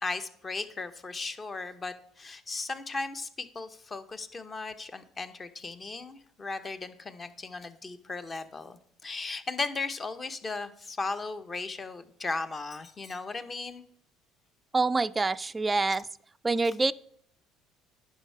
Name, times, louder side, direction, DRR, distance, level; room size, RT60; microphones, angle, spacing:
voice 1, 0.0-13.8, left 3 dB, 25° left, 11 dB, 0.8 m, -36 dB
voice 2, 14.7-16.1 16.4-16.9, right 3 dB, 15° right, 14 dB, 0.3 m, -26 dB
10.5 x 5.7 x 4.6 m, 0.67 s
supercardioid pair, 105°, 0 cm